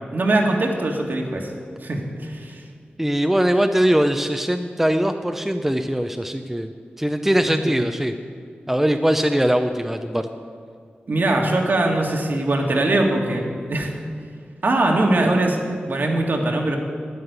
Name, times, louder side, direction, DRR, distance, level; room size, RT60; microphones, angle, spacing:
voice 1, 0.1-1.5 1.8-2.6 7.4-7.8 11.1-13.9 14.6-15.6 15.9-16.8, right 2 dB, 60° right, 1 dB, 2.0 m, -21 dB
voice 2, 3.0-6.7 7.0-8.1 8.7-10.3, equal, 10° right, 6 dB, 0.6 m, -21 dB
9.8 x 9.5 x 8.2 m, 2.1 s
wide cardioid pair, 65°, 4 cm